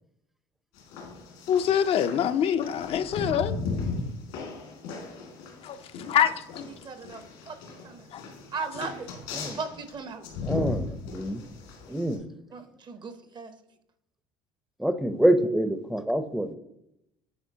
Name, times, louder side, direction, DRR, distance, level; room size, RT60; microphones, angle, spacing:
sound 1, 0.7-12.1, left 3 dB, 90° left, 2.0 m, -36 dB
voice 1, 1.5-3.6 5.6-5.8 6.1-6.7 8.1-8.2 8.6-8.7, left 9 dB, 55° left, 0.4 m, -25 dB
voice 2, 6.8-7.6 7.8-8.0 8.5-8.9 9.5-10.2 12.5-13.5, right 4 dB, 40° right, 0.7 m, -37 dB
voice 3, 10.4-10.9 11.1-11.4 11.9-12.2 14.8-16.5, right 1 dB, ahead, 0.5 m, -25 dB
9.3 x 4.3 x 2.7 m
supercardioid pair, 85°, 12 cm